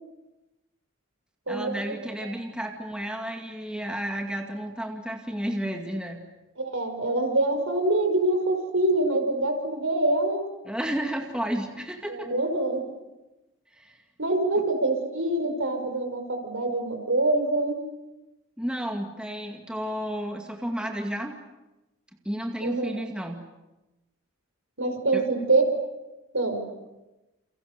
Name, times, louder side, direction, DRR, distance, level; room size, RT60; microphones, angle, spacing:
voice 1, 1.5-6.2 10.7-12.3 13.7-14.0 14.6-14.7 18.6-21.3 22.3-23.4 25.1-25.2, equal, 5° right, 2 dB, 2.2 m, -32 dB
voice 2, 6.6-10.5 12.1-12.8 14.2-17.8 22.6-22.9 24.8-25.6 26.3-26.6, right 2 dB, 75° right, 5 dB, 5.8 m, -25 dB
29.5 x 29.0 x 6.9 m, 1.0 s
head